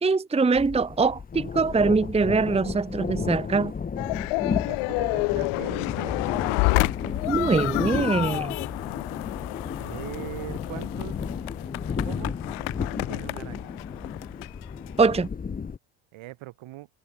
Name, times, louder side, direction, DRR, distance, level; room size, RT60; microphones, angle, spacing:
voice 1, 0.0-3.7 7.3-8.5 15.0-15.3, right 4 dB, 15° right, 0.9 m, -23 dB
sound 1, 0.6-15.8, left 6 dB, 20° left, 0.7 m, -33 dB
sound 2, 4.0-15.2, left 27 dB, 85° left, 1.6 m, -30 dB
voice 2, 4.5-6.2 6.4-6.6 9.8-11.2 12.0-12.4 13.1-13.7 16.1-16.9, right 17 dB, 70° right, 5.3 m, -40 dB
supercardioid pair, 95°, 49 cm